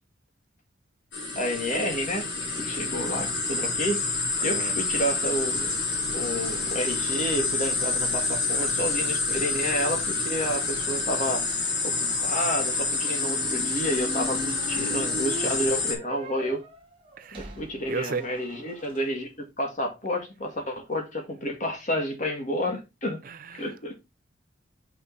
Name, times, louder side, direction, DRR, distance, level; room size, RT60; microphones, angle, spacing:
sound 1, 1.1-15.9, left 3 dB, 70° left, 3.1 m, -28 dB
voice 1, 1.4-2.3 2.6-4.0 4.4-5.8 6.1-11.4 11.8-16.6 17.3-19.3 19.6-23.2 23.5-23.9, equal, 40° left, 2.0 m, -30 dB
voice 2, 4.4-4.8 17.2-17.5 17.9-18.3 23.2-23.7, right 4 dB, 45° right, 0.5 m, -34 dB
sound 2, 13.1-19.0, equal, 30° right, 1.5 m, -38 dB
5.9 x 5.4 x 4.0 m
head